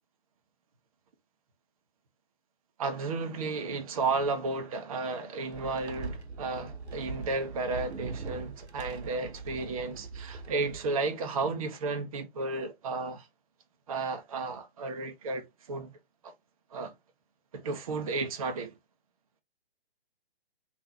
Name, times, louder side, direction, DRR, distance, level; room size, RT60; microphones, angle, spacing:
voice 1, 2.8-13.3 13.9-15.9 16.2-16.3 16.7-16.9 17.5-18.7, right 3 dB, 35° right, 0.6 m, -33 dB
sound 1, 5.5-10.9, right 4 dB, 85° right, 0.9 m, -41 dB
3.6 x 2.5 x 2.6 m
figure-of-eight pair, 140°, 32 cm